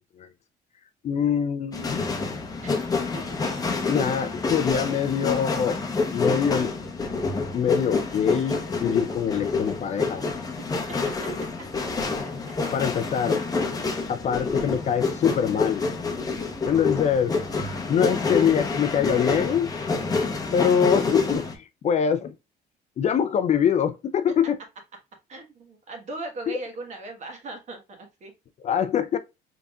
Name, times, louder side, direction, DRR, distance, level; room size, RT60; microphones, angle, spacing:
voice 1, 1.0-2.1 3.9-5.8 6.1-6.7 7.5-10.2 12.7-13.4 14.1-15.9 16.7-17.3 17.9-19.7 20.5-22.3 23.0-24.6 26.5-26.6 28.6-29.2, left 8 dB, 45° left, 0.4 m, -24 dB
sound 1, 1.7-21.6, left 4 dB, 20° left, 0.9 m, -28 dB
voice 2, 10.9-11.5 14.0-14.1 25.3-28.3, right 2 dB, 45° right, 1.3 m, -39 dB
4.0 x 3.4 x 2.3 m
cardioid pair, 110°, 17 cm